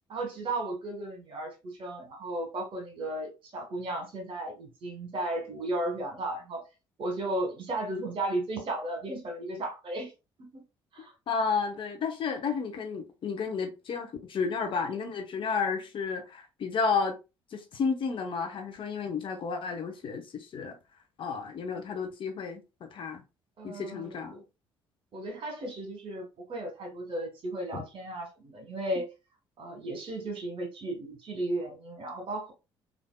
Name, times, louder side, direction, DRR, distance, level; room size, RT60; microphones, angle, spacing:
voice 1, 0.1-6.6 7.0-10.1 10.4-10.6 10.9-11.1 23.6-24.4 25.1-29.1 29.6-32.5, right 1 dB, 45° right, 1.3 m, -35 dB
voice 2, 11.3-17.2 17.5-20.8 21.2-23.2 23.6-24.4 27.7-27.8, left 5 dB, 45° left, 0.7 m, -32 dB
3.4 x 2.5 x 2.2 m
figure-of-eight pair, 50°, 12 cm